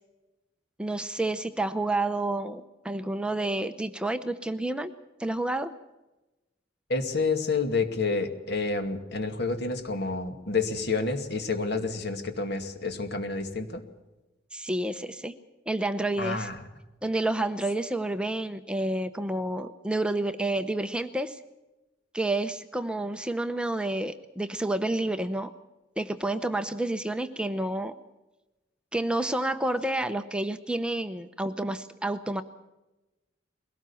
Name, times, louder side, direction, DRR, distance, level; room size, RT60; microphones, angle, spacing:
voice 1, 0.8-4.9 5.2-5.7 14.5-15.3 15.7-16.5 17.0-21.4 22.1-25.5 26.0-28.0 28.9-32.4, right 2 dB, 5° right, 9 dB, 0.7 m, -29 dB
voice 2, 6.9-13.8 16.2-16.6, left 3 dB, 60° left, 6 dB, 2.3 m, -29 dB
22.0 x 18.0 x 7.0 m, 1.0 s
head